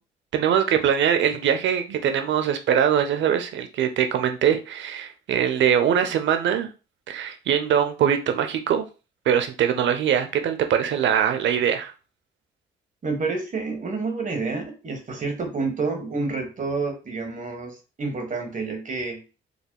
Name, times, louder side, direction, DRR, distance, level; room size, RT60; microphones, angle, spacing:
voice 1, 0.3-6.7 7.1-8.9 9.3-11.9, right 9 dB, 70° right, 0.7 m, -22 dB
voice 2, 13.0-19.2, right 3 dB, 40° right, 1.4 m, -29 dB
5.0 x 3.3 x 2.2 m
cardioid pair, 90°, 20 cm